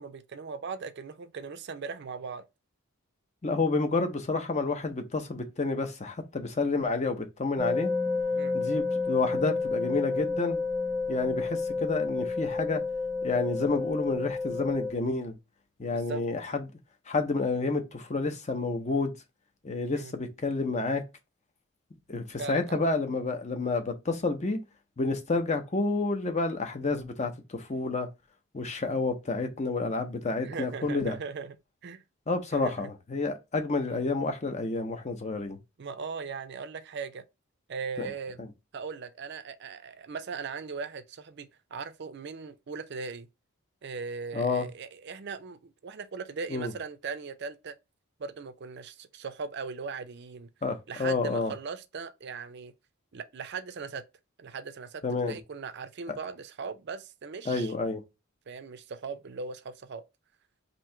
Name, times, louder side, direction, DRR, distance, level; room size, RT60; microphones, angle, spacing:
voice 1, 0.0-2.4 8.4-8.6 15.9-16.2 19.9-20.1 22.4-22.8 30.4-31.5 31.8-32.0 32.5-32.7 33.8-34.1 35.8-37.2 37.7-38.4 38.7-43.3 43.8-47.7 48.2-50.5 50.9-52.7 53.1-54.0 54.4-55.0 55.3-57.7 58.5-60.0, right 5 dB, 50° right, 0.5 m, -39 dB
voice 2, 3.4-7.9 8.5-10.6 11.1-12.8 13.2-15.3 15.8-16.6 17.1-19.1 19.6-21.0 22.1-24.6 25.0-28.1 28.5-31.2 32.3-35.6 38.0-38.1 38.4-38.5 44.3-44.7 46.5-46.7 50.6-51.5 55.0-55.4 57.5-58.0, left 3 dB, 35° left, 0.7 m, -29 dB
sound 1, 7.6-14.9, left 4 dB, 10° left, 0.9 m, -30 dB
3.0 x 2.7 x 4.4 m
head